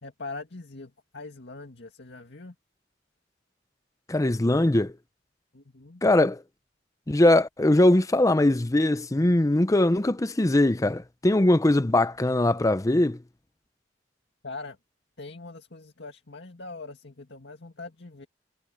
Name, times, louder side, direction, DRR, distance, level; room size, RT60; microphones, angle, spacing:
voice 1, 0.0-2.5 5.5-6.0 14.4-14.8 15.2-18.3, left 3 dB, 65° left, 2.1 m, -42 dB
voice 2, 4.1-4.9 6.0-6.4 7.1-13.2, left 1 dB, 20° left, 0.6 m, -21 dB
head